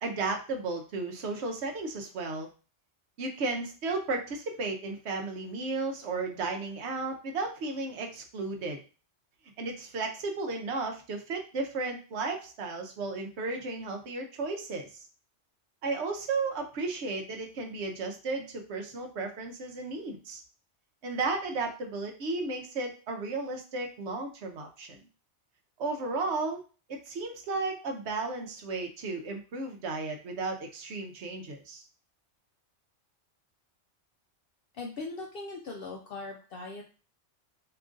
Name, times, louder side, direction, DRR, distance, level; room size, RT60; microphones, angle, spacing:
voice 1, 0.0-2.5 3.2-8.8 9.6-14.9 15.8-20.4 21.0-25.0 25.8-26.6 26.9-31.8, right 3 dB, 70° right, 3 dB, 1.0 m, -34 dB
voice 2, 34.7-36.8, left 3 dB, 60° left, 0 dB, 0.7 m, -40 dB
2.9 x 2.5 x 3.6 m, 0.35 s
omnidirectional pair, 1.2 m